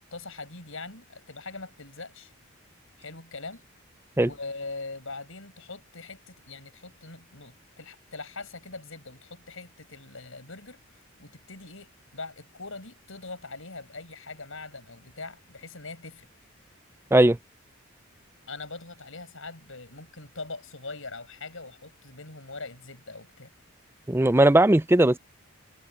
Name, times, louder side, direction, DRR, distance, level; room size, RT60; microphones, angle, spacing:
voice 1, 0.0-2.3 3.0-3.6 4.2-10.8 11.2-16.3 18.5-23.5, left 3 dB, 65° left, 6.1 m, -42 dB
voice 2, 24.1-25.2, right 1 dB, 10° right, 0.5 m, -18 dB
head